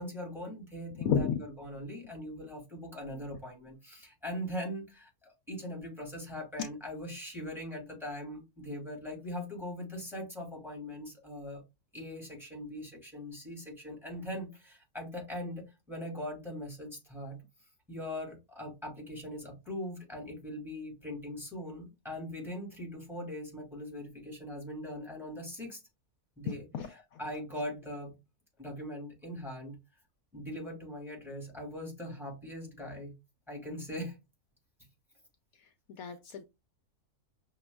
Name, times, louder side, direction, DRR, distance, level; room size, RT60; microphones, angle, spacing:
voice 1, 0.0-11.6 11.9-17.4 17.9-25.8 26.4-26.6 27.2-28.1 28.6-29.8 30.3-33.1 33.5-34.2, left 1 dB, ahead, 2.1 m, -41 dB
voice 2, 0.9-1.4 26.5-27.2 35.6-35.7 36.0-36.4, left 7 dB, 75° left, 1.0 m, -32 dB
6.0 x 2.7 x 2.2 m
omnidirectional pair, 1.6 m